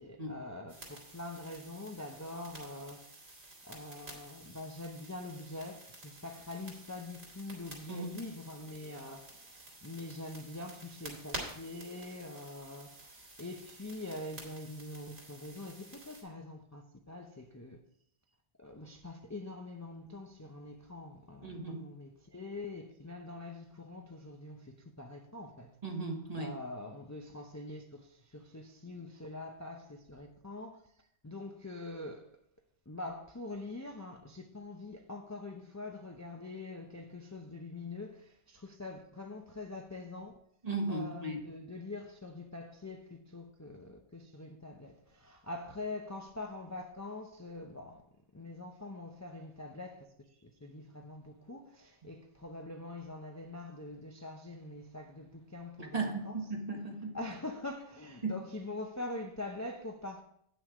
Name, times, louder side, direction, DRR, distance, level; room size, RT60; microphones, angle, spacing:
voice 1, 0.0-3.0 3.7-17.8 18.6-25.8 26.3-30.8 31.2-32.3 32.9-40.3 40.9-48.0 48.3-50.1 50.4-56.4 57.1-60.2, left 2 dB, 20° left, 0.6 m, -44 dB
sound 1, 0.7-16.2, right 2 dB, 70° right, 2.8 m, -50 dB
voice 2, 7.9-8.2 21.4-21.8 25.8-26.5 40.6-41.4 55.8-57.1 58.2-58.3, right 3 dB, 35° right, 1.5 m, -36 dB
9.1 x 6.3 x 4.9 m
omnidirectional pair, 1.1 m